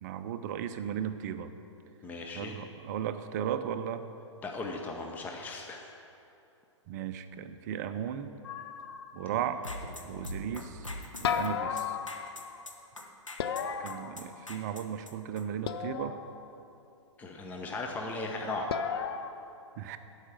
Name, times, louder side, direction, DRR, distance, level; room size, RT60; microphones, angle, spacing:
voice 1, 0.0-1.5 2.4-4.0 6.9-8.3 9.1-9.6 10.1-10.9 11.2-12.0 13.8-16.2 19.8-20.0, right 9 dB, 35° right, 10 dB, 0.5 m, -35 dB
voice 2, 2.0-2.6 4.4-5.9 9.3-9.5 17.2-18.8, left 2 dB, 10° left, 1 dB, 0.6 m, -37 dB
sound 1, 8.4-9.4 11.2-12.6 13.4-14.7 15.6-16.5 18.7-19.3, left 7 dB, 50° left, 0.6 m, -35 dB
sound 2, 9.6-15.7, left 2 dB, 85° left, 1.1 m, -42 dB
12.5 x 4.8 x 7.5 m, 2.8 s
figure-of-eight pair, 115°, 16 cm